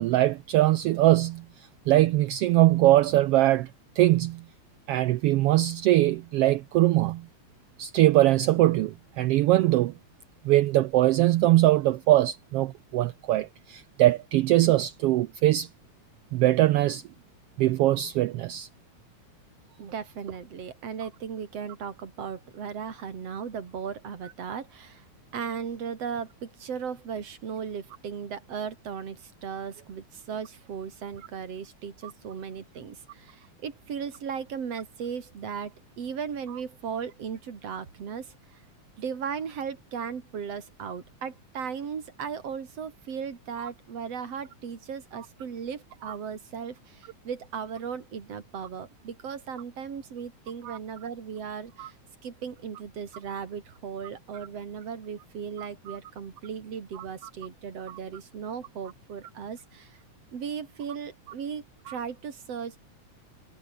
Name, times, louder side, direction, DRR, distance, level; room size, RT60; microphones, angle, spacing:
voice 1, 0.0-1.4 1.9-3.7 4.0-4.4 4.9-7.2 7.8-9.9 10.4-15.7 16.3-17.0 17.6-18.7 50.7-50.8 51.8-51.9 55.9-56.0 57.9-58.0 61.9-62.0, right 15 dB, 85° right, 1.3 m, -22 dB
voice 2, 19.8-25.1 25.3-38.6 39.0-52.0 52.2-60.0 60.3-62.8, right 7 dB, 55° right, 3.7 m, -37 dB
omnidirectional pair, 3.3 m